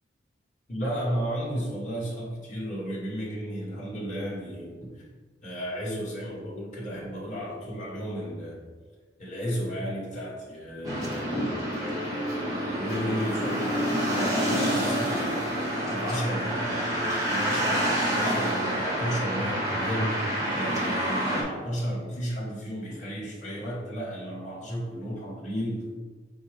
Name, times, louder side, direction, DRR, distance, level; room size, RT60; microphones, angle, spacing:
voice 1, 0.7-5.0 5.4-8.6 9.2-15.5 15.9-25.8, equal, 40° left, -5 dB, 1.1 m, -33 dB
sound 1, 10.8-21.4, equal, 15° right, 1.0 m, -28 dB
4.7 x 2.2 x 4.7 m, 1.4 s
head